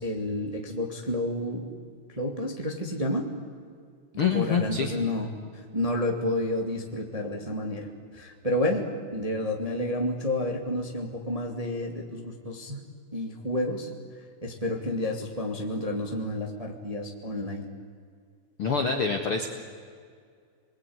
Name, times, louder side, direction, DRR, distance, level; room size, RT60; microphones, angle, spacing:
voice 1, 0.0-1.7 2.1-3.3 4.3-5.3 5.7-7.9 8.1-8.8 9.1-12.8 13.1-13.9 14.4-17.6, left 1 dB, 15° right, 1 dB, 1.7 m, -30 dB
voice 2, 4.2-5.0 18.6-19.5, left 6 dB, 50° left, 3 dB, 1.8 m, -26 dB
28.0 x 21.5 x 9.7 m, 2.1 s
omnidirectional pair, 4.7 m